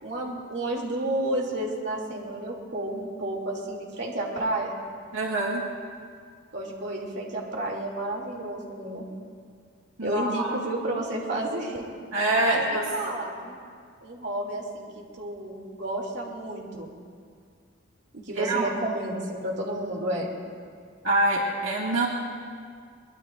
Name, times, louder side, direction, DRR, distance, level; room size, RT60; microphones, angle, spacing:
voice 1, 0.0-4.7 6.5-9.1 10.0-11.9 12.4-13.6 14.0-16.9 18.1-20.3, right 1 dB, 55° right, -1 dB, 2.9 m, -31 dB
voice 2, 5.1-5.6 10.0-10.6 12.1-12.8 18.3-18.7 21.0-22.1, right 2 dB, 90° right, -3 dB, 2.2 m, -25 dB
23.5 x 22.0 x 2.6 m, 2.1 s
head